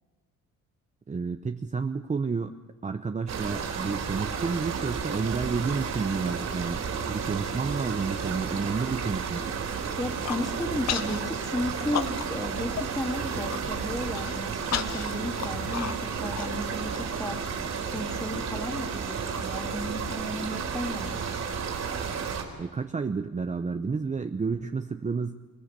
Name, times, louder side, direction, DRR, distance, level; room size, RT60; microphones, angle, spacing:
voice 1, 1.1-2.5 2.8-9.4 22.6-25.4, right 4 dB, 25° right, 6 dB, 0.9 m, -30 dB
sound 1, 3.3-22.4, right 6 dB, 65° right, 4.4 m, -32 dB
Human voice, 10.0-10.4 10.9-11.2 11.5-12.5 12.8-12.9 13.2-13.6 14.1-17.0, left 9 dB, 60° left, 1.0 m, -33 dB
voice 2, 10.0-17.4 17.9-21.5, left 1 dB, 15° left, 3 dB, 3.0 m, -34 dB
29.0 x 17.0 x 6.9 m, 1.3 s
cardioid pair, 90°, 30 cm